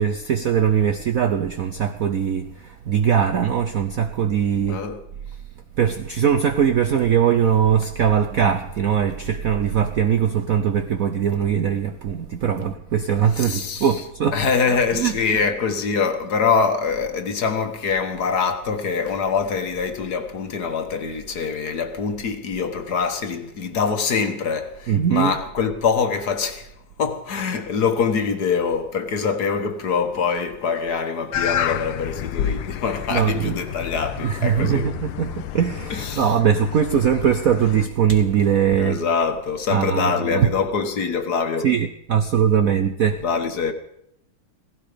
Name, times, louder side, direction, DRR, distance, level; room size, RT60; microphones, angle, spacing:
voice 1, 0.0-4.8 5.8-14.5 14.9-15.4 24.9-25.3 33.1-33.7 34.2-39.0 39.7-40.5 41.6-43.2, right 8 dB, 65° right, 0.8 m, -21 dB
voice 2, 4.7-5.0 13.3-14.0 14.3-26.7 27.0-34.9 35.9-36.4 38.8-41.7 43.2-43.7, left 5 dB, 55° left, 1.6 m, -24 dB
sound 1, 31.3-37.9, left 9 dB, 70° left, 1.4 m, -30 dB
16.5 x 16.0 x 5.1 m
omnidirectional pair, 2.3 m